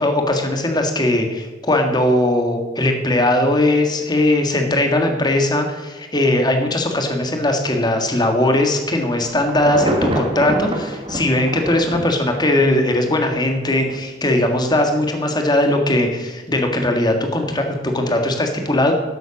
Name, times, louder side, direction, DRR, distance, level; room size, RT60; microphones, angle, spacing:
voice 1, 0.0-18.9, left 1 dB, 25° left, 4 dB, 1.7 m, -19 dB
Insect / Thunder / Rain, 9.0-13.4 13.8-14.0, right 1 dB, 30° right, 1.9 m, -26 dB
12.0 x 7.9 x 7.1 m, 1.3 s
head